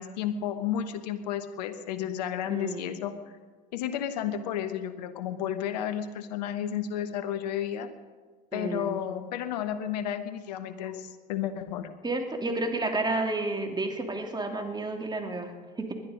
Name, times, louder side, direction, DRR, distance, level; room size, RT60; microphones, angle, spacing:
voice 1, 0.0-3.2 3.7-7.9 8.5-11.9, left 9 dB, 80° left, 9 dB, 1.2 m, -32 dB
voice 2, 2.5-2.9 8.5-8.9 12.0-15.9, right 2 dB, 20° right, 4 dB, 2.9 m, -31 dB
20.5 x 11.5 x 5.2 m, 1.4 s
hypercardioid pair, 70°, 21 cm